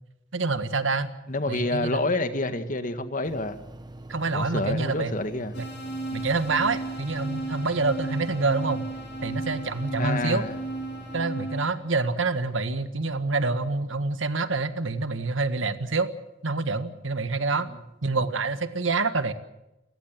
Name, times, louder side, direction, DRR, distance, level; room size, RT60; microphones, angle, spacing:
voice 1, 0.3-1.1 1.5-2.0 4.1-5.1 5.6-5.7 6.1-8.8 9.2-10.4 11.1-16.1 16.4-17.7 18.0-19.3, right 3 dB, 90° right, 10 dB, 1.6 m, -27 dB
voice 2, 1.3-3.6 4.3-5.6 10.0-10.5, left 2 dB, 45° left, 9 dB, 1.7 m, -28 dB
sound 1, 3.2-11.2, right 1 dB, 20° right, 1.2 m, -43 dB
sound 2, 5.5-11.7, right 2 dB, 60° left, 6.7 m, -35 dB
29.5 x 16.0 x 7.6 m, 0.94 s
head